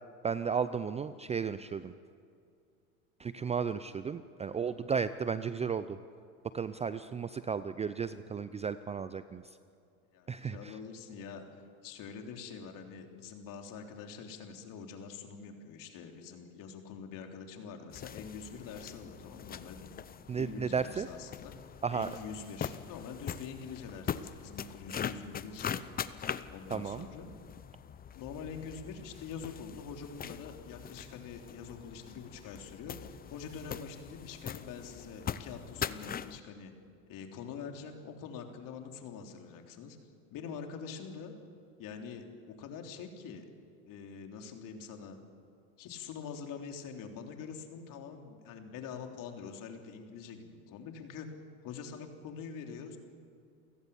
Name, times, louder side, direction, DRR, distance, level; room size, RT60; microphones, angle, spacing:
voice 1, 0.2-1.9 3.2-6.0 6.5-9.4 10.3-10.8 20.3-21.1 21.8-22.2 26.7-27.1, right 6 dB, 15° right, 13 dB, 0.5 m, -34 dB
voice 2, 10.1-11.4 11.8-19.9 20.3-21.5 21.9-25.8 26.5-27.3 28.1-36.7 37.1-40.0 40.3-41.3 41.8-43.5 43.8-45.2 45.8-51.3 51.6-53.0, left 6 dB, 50° left, 3 dB, 3.4 m, -45 dB
sound 1, 17.9-36.4, left 8 dB, 20° left, 0.7 m, -42 dB
29.0 x 16.0 x 7.1 m, 2.3 s
hypercardioid pair, 100°, 43 cm